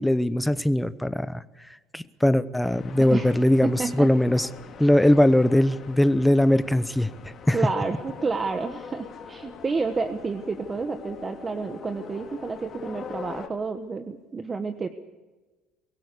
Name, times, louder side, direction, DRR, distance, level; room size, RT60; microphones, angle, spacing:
voice 1, 0.0-1.4 1.9-4.5 4.8-7.1 7.5-7.6, left 1 dB, 5° left, 15 dB, 0.8 m, -20 dB
sound 1, 2.6-13.5, left 6 dB, 35° left, 2.9 m, -42 dB
voice 2, 3.6-4.1 5.0-5.1 7.5-14.9, right 4 dB, 25° right, 9 dB, 1.1 m, -30 dB
23.0 x 16.5 x 8.3 m, 1.3 s
cardioid pair, 120°, 0 cm